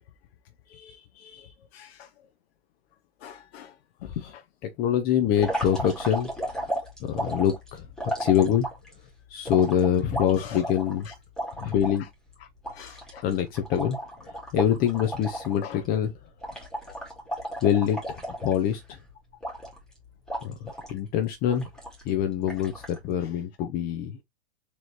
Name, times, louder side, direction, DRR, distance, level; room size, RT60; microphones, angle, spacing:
voice 1, 0.7-2.1 3.2-3.7 10.4-10.6 12.7-13.2 15.6-15.7, left 9 dB, 70° left, 0.7 m, -45 dB
voice 2, 4.0-6.7 7.0-8.7 9.3-11.1 11.6-12.1 13.2-16.2 17.6-19.0 20.4-21.7 22.0-24.2, left 9 dB, 30° left, 0.5 m, -25 dB
sound 1, 5.3-8.9 9.5-12.0 12.3-12.4 12.6-15.6 15.8-16.1 16.4-18.9 19.4-19.9 20.3-21.0 21.5-22.1 22.5-23.0, right 1 dB, ahead, 1.7 m, -34 dB
4.1 x 3.0 x 3.0 m
hypercardioid pair, 135°, 33 cm